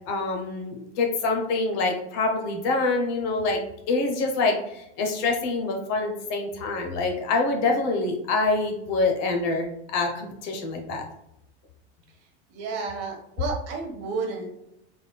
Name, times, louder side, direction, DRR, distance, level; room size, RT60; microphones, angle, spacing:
voice 1, 0.1-3.6 3.9-11.0, left 3 dB, 50° left, 2 dB, 0.9 m, -26 dB
voice 2, 12.1-14.5, right 4 dB, 45° right, 0 dB, 1.1 m, -32 dB
3.7 x 3.4 x 2.2 m, 0.82 s
supercardioid pair, 120°, 35 cm